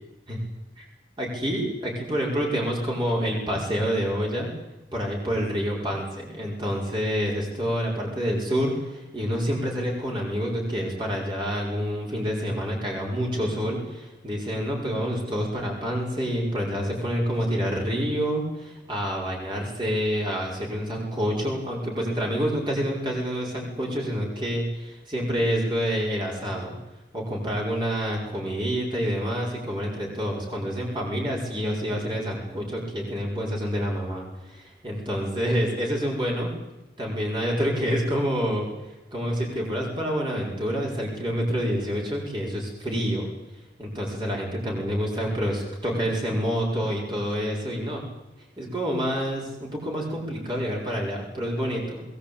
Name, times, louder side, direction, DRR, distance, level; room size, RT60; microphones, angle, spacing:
voice 1, 1.2-4.5 4.9-26.7 27.1-36.5 37.0-43.3 43.8-48.0 48.6-52.0, equal, 25° right, -2 dB, 5.4 m, -28 dB
21.0 x 19.5 x 8.8 m, 0.98 s
head